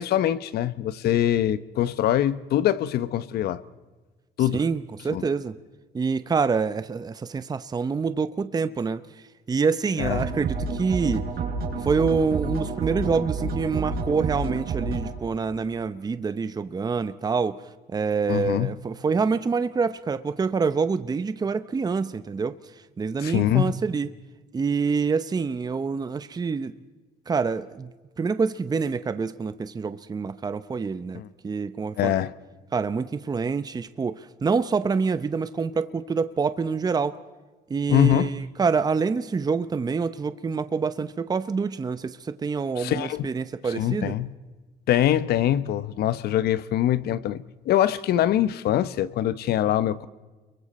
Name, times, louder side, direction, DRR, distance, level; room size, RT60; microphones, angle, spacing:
voice 1, 0.0-3.6 4.4-4.6 5.1-5.2 10.0-10.2 18.3-18.7 23.2-23.7 31.1-31.3 32.0-32.3 37.9-38.3 42.8-43.3 43.7-44.3 44.9-50.1, left 12 dB, 70° left, 0.9 m, -23 dB
voice 2, 4.5-5.6 5.9-9.0 9.5-11.2 11.8-17.6 17.9-22.6 23.0-24.1 24.5-26.7 27.3-27.9 28.2-32.3 32.7-37.2 37.7-44.2, right 5 dB, 25° right, 0.8 m, -26 dB
sound 1, 10.0-15.1, right 4 dB, 65° right, 4.6 m, -29 dB
29.5 x 23.0 x 4.3 m
cardioid pair, 110°, 17 cm